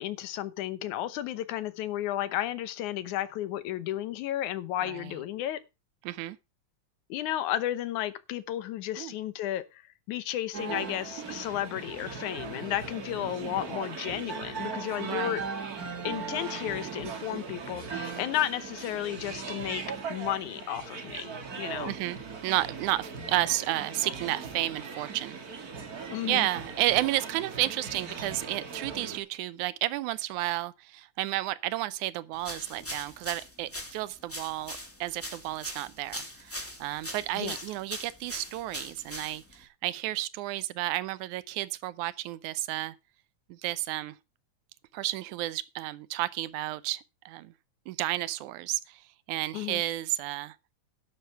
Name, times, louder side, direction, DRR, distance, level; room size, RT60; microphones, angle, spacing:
voice 1, 0.0-5.6 7.1-15.4 16.0-19.8 20.1-21.9 26.1-26.5 37.4-37.6 49.5-49.8, left 13 dB, 85° left, 2.4 m, -33 dB
voice 2, 6.0-6.4 9.0-9.1 15.0-15.4 21.9-25.4 26.3-34.7 35.0-42.9 43.5-44.1 44.9-47.5 47.9-49.0 49.3-50.6, right 16 dB, 90° right, 2.2 m, -32 dB
sound 1, 10.5-29.2, right 5 dB, 35° right, 1.8 m, -39 dB
sound 2, 32.4-39.6, equal, 5° left, 2.3 m, -41 dB
11.5 x 6.9 x 5.7 m
omnidirectional pair, 3.3 m